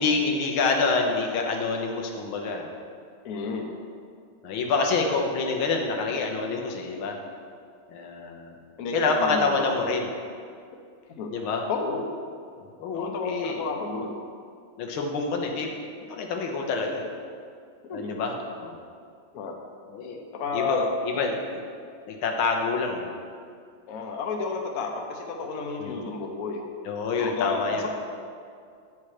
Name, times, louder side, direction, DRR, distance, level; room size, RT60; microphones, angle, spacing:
voice 1, 0.0-2.7 4.4-7.2 7.9-8.6 8.9-10.1 11.3-11.6 12.8-13.9 14.8-17.1 17.9-18.8 19.9-20.2 20.5-21.6 22.1-23.1 25.8-26.1 26.9-27.8, left 4 dB, 85° left, 1 dB, 1.7 m, -27 dB
voice 2, 3.2-3.7 8.8-9.7 11.2-11.3 11.7-12.0 12.9-14.2 17.9-18.2 19.3-19.5 20.3-20.9 23.9-26.6 27.2-27.9, left 4 dB, 55° left, 2 dB, 1.1 m, -31 dB
8.7 x 5.7 x 4.8 m, 2.2 s
omnidirectional pair, 2.2 m